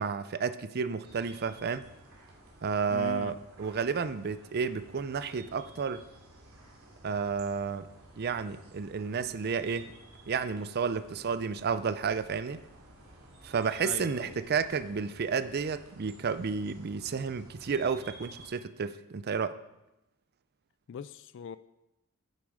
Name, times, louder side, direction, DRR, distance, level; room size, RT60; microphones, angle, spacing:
voice 1, 0.0-1.9 2.6-6.0 7.0-7.9 8.2-9.9 10.3-12.6 13.4-19.6, right 5 dB, 50° right, 0.5 m, -31 dB
sound 1, 1.0-18.5, right 2 dB, 75° right, 2.5 m, -54 dB
voice 2, 2.9-3.4 13.8-14.4 20.9-21.6, left 7 dB, 60° left, 0.3 m, -40 dB
9.7 x 7.3 x 4.9 m
head